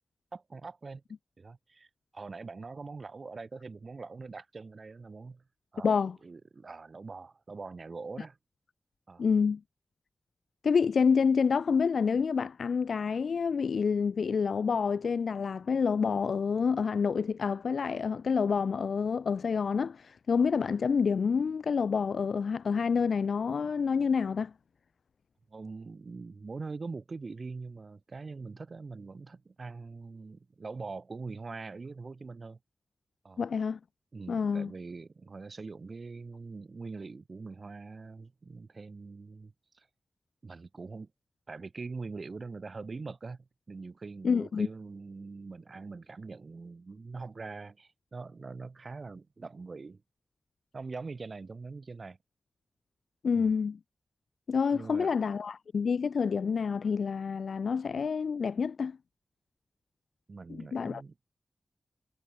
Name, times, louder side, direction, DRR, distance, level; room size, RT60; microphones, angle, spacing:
voice 1, 0.3-1.0 1.4-5.4 5.7-8.4 9.1-9.3 25.5-32.6 33.2-33.4 34.1-39.9 40.4-41.1 41.5-50.0 50.7-52.2 53.3-53.5 54.7-55.1 60.3-61.1, right 4 dB, 50° right, 3.5 m, -43 dB
voice 2, 5.8-6.1 9.2-9.6 10.6-24.5 33.4-33.8 34.3-34.7 44.2-44.7 53.2-53.8 54.5-59.0 60.5-61.0, left 6 dB, 90° left, 0.7 m, -28 dB
wide cardioid pair, 120°, 0 cm